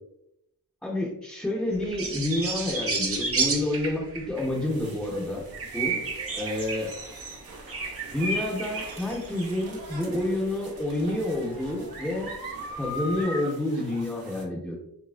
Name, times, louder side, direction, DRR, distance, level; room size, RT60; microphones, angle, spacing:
voice 1, 0.8-5.4 5.7-6.1 6.4-6.9 8.1-12.3 12.8-14.8, left 1 dB, 5° left, -6 dB, 0.6 m, -29 dB
sound 1, 1.8-4.6 5.5-9.7 11.4-11.5 12.3-13.2, right 4 dB, 40° right, 0.5 m, -32 dB
sound 2, 4.4-14.4, right 1 dB, 75° right, 0.7 m, -42 dB
2.9 x 2.3 x 2.4 m, 0.83 s
wide cardioid pair, 75°, 35 cm